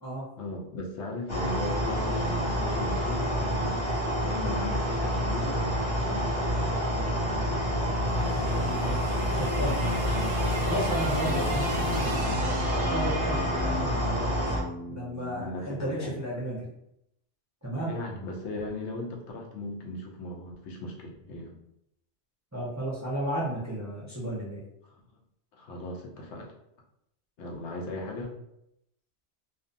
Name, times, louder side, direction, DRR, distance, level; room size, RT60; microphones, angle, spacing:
voice 1, 0.4-6.8 15.3-16.1 17.8-21.5 25.5-26.5 27.4-28.3, left 2 dB, 80° left, 1 dB, 0.9 m, -37 dB
sound 1, 1.3-14.6, equal, 30° left, 0.6 m, -28 dB
sound 2, 7.7-16.0, equal, 60° right, 0.7 m, -38 dB
voice 2, 8.3-14.3 14.9-16.7 17.6-17.9 22.5-24.6, right 1 dB, 25° right, -7 dB, 0.4 m, -34 dB
2.4 x 2.2 x 2.6 m, 0.78 s
omnidirectional pair, 1.2 m